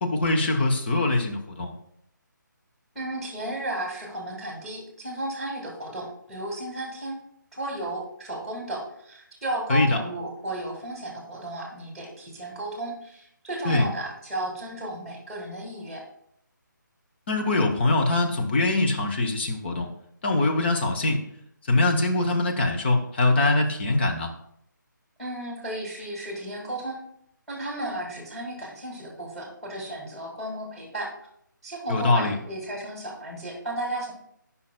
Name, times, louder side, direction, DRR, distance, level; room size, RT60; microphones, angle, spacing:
voice 1, 0.0-1.7 9.7-10.0 13.6-13.9 17.3-19.9 20.2-21.2 21.7-24.3 31.9-32.4, left 2 dB, 35° left, 3 dB, 1.0 m, -23 dB
voice 2, 2.9-7.2 7.5-16.0 25.2-27.0 27.5-31.1 31.6-34.1, right 1 dB, ahead, -2 dB, 1.9 m, -34 dB
12.5 x 5.7 x 2.2 m, 0.71 s
figure-of-eight pair, 150°, 11 cm